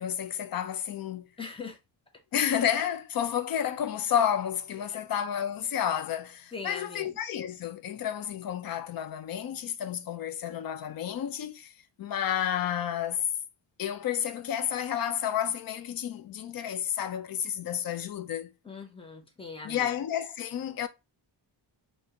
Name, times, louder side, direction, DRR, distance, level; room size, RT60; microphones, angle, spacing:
voice 1, 0.0-1.3 2.3-13.2 13.8-18.5 19.6-20.9, left 9 dB, 50° left, 0.5 m, -31 dB
voice 2, 1.4-1.8 6.5-7.2 18.6-19.9, left 4 dB, 10° left, 0.6 m, -41 dB
3.5 x 2.7 x 2.8 m
wide cardioid pair, 170°, 44 cm